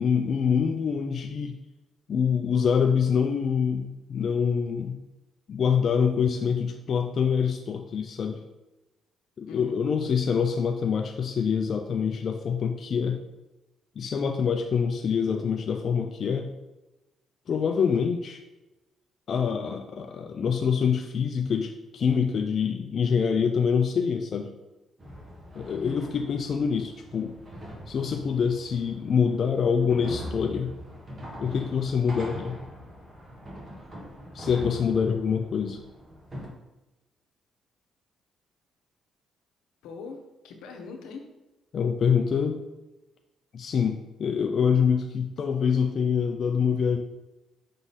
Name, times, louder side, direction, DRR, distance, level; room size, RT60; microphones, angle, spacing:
voice 1, 0.0-1.6 2.1-5.0 5.5-8.4 9.4-13.2 14.0-16.5 17.5-18.4 19.3-24.5 25.5-27.3 27.9-30.7 31.4-32.6 34.3-35.8 41.7-42.6 43.5-47.0, left 6 dB, 55° left, 4 dB, 0.4 m, -25 dB
voice 2, 9.5-9.9 25.7-26.1 39.8-40.2 40.4-41.3, left 4 dB, 90° left, 3 dB, 0.9 m, -41 dB
sound 1, 25.0-36.5, equal, 35° right, 1.5 m, -42 dB
6.0 x 3.8 x 4.1 m, 1.0 s
cardioid pair, 90°, 0 cm